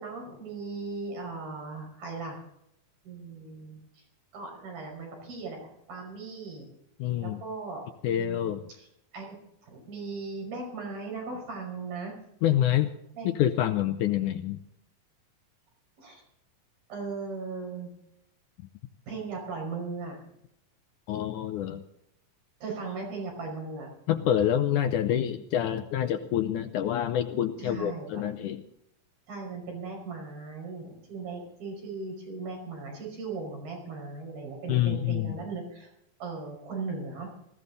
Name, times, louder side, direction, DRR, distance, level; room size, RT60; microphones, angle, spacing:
voice 1, 0.0-2.4 3.0-3.8 4.3-6.7 7.2-8.9 9.1-9.4 9.6-12.1 13.1-13.3 16.0-16.2 16.9-17.9 19.1-20.2 22.6-23.9 27.6-28.2 29.3-35.9 36.2-37.3, right 4 dB, 80° right, 0 dB, 7.3 m, -38 dB
voice 2, 7.0-7.4 8.0-8.6 12.4-12.9 13.3-14.6 21.1-21.8 24.1-28.6 34.7-35.4, left 11 dB, 80° left, 8 dB, 1.9 m, -27 dB
18.5 x 15.0 x 4.0 m, 0.79 s
omnidirectional pair, 4.1 m